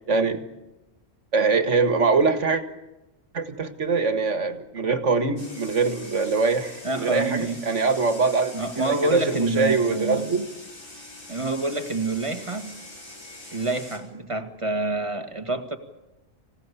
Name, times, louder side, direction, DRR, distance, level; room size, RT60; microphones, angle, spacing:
voice 1, 0.1-0.4 1.3-2.6 3.3-8.6 8.9-10.5, right 4 dB, 65° right, 9 dB, 2.1 m, -23 dB
sound 1, 5.4-14.0, left 1 dB, 80° left, 6.1 m, -43 dB
voice 2, 6.8-7.6 8.5-10.3 11.3-12.8 13.5-15.8, right 2 dB, 25° right, 7 dB, 1.9 m, -27 dB
25.5 x 17.0 x 8.4 m, 1.0 s
omnidirectional pair, 1.4 m